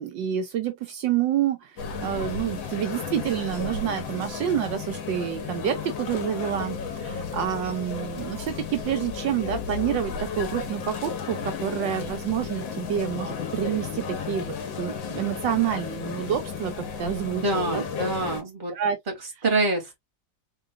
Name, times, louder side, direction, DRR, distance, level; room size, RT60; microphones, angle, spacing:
voice 1, 0.0-17.8 18.7-19.0, right 9 dB, 75° right, 1.3 m, -28 dB
sound 1, 1.8-18.4, left 6 dB, 85° left, 1.8 m, -33 dB
voice 2, 17.3-18.7 19.4-19.9, right 2 dB, 25° right, 1.9 m, -26 dB
3.8 x 3.8 x 2.5 m
omnidirectional pair, 2.1 m